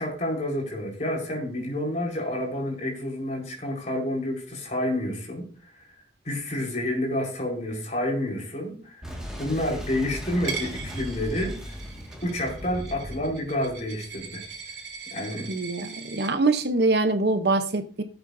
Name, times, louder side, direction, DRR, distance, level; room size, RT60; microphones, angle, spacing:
voice 1, 0.0-5.9 6.2-9.1 9.4-11.6 12.2-14.4 15.1-15.5, left 1 dB, 45° left, 4.6 m, -29 dB
Boom, 9.0-14.6, equal, 5° right, 2.0 m, -38 dB
Coin (dropping), 10.4-16.3, right 6 dB, 85° right, 2.9 m, -40 dB
voice 2, 15.5-18.0, right 2 dB, 65° right, 0.9 m, -24 dB
17.0 x 8.1 x 2.7 m
head